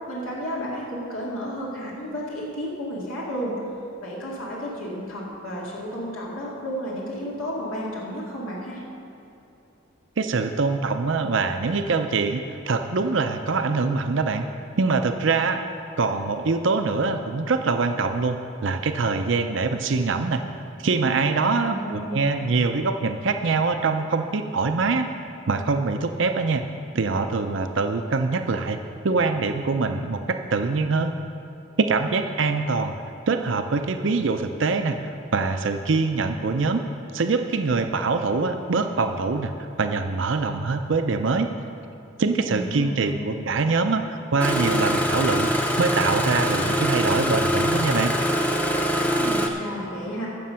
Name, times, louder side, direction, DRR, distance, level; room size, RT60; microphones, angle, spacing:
voice 1, 0.1-3.6 4.0-8.8 21.4-22.3 42.4-43.4 49.1-50.3, equal, 85° left, -5 dB, 2.3 m, -32 dB
voice 2, 10.2-14.4 14.8-15.6 16.0-20.4 20.8-25.1 25.5-26.7 26.9-28.8 29.0-31.2 31.8-33.0 33.3-36.8 37.1-41.5 42.2-45.5 45.8-48.1, right 4 dB, 65° right, 7 dB, 0.6 m, -24 dB
Engine starting, 44.4-49.5, equal, 5° left, 0.7 m, -23 dB
15.0 x 7.0 x 5.7 m, 2.8 s
head